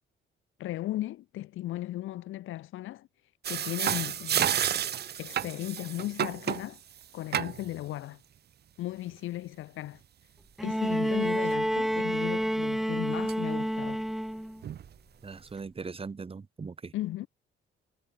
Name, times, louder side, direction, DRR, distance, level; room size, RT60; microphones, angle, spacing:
voice 1, 0.6-3.1 3.5-4.5 5.2-6.8 7.1-8.2 8.8-10.0 10.6-14.0 16.9-17.3, left 15 dB, 85° left, 4.9 m, -36 dB
sound 1, 3.4-6.7 7.3-7.8 11.5-11.6 12.4-12.5 13.3-13.4 14.6-14.9, right 10 dB, 55° right, 1.0 m, -30 dB
Bowed string instrument, 10.6-14.6 15.9-16.0, equal, ahead, 0.5 m, -29 dB
voice 2, 15.2-16.9, right 4 dB, 30° right, 1.4 m, -40 dB
cardioid pair, 90°, 20 cm